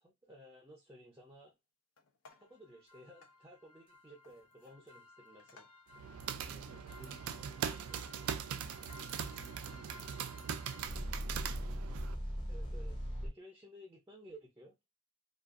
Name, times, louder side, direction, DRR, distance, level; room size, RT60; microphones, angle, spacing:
voice 1, 0.0-1.6 2.4-5.7 12.5-14.8, equal, 15° right, 0.5 m, -56 dB
Metal pot put down on stove top, 2.0-2.6 3.2-3.4 4.2-4.8 5.2-5.9 6.5-7.1 7.6-8.0 8.8-9.0, left 4 dB, 80° left, 0.5 m, -61 dB
sound 1, 2.9-13.3, equal, 25° left, 0.8 m, -45 dB
sound 2, 5.9-12.1, right 8 dB, 80° right, 0.3 m, -41 dB
voice 2, 6.3-11.3, left 1 dB, 45° left, 1.1 m, -62 dB
2.5 x 2.3 x 2.4 m
head